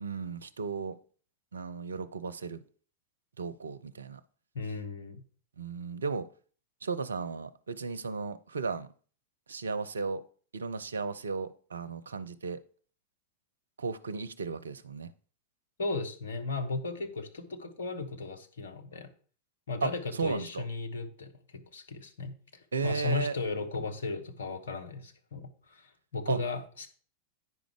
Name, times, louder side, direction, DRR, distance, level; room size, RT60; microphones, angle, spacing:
voice 1, 0.0-1.0 1.5-2.6 3.4-4.2 5.6-6.3 6.8-8.9 9.5-10.2 10.5-12.6 13.8-15.1 19.8-20.6 22.7-23.4 26.3-26.4, right 4 dB, 70° right, 14 dB, 0.6 m, -35 dB
voice 2, 4.5-5.2 15.8-19.1 19.7-22.3 22.8-26.9, left 3 dB, 65° left, 5 dB, 1.3 m, -35 dB
9.6 x 5.1 x 4.9 m, 0.42 s
figure-of-eight pair, 90°, 0 cm